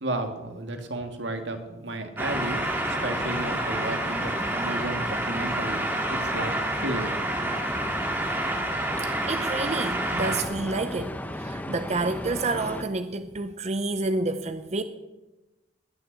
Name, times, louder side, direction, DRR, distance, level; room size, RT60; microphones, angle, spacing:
voice 1, 0.0-2.6 2.9-6.5 6.8-7.0 7.4-7.5, right 2 dB, 85° right, 1.9 m, -33 dB
sound 1, 2.2-12.8, left 1 dB, 10° left, 0.9 m, -35 dB
sound 2, 2.2-10.4, right 1 dB, 10° right, 2.0 m, -29 dB
voice 2, 9.0-14.8, right 3 dB, 40° right, 0.6 m, -29 dB
20.0 x 6.7 x 8.1 m
head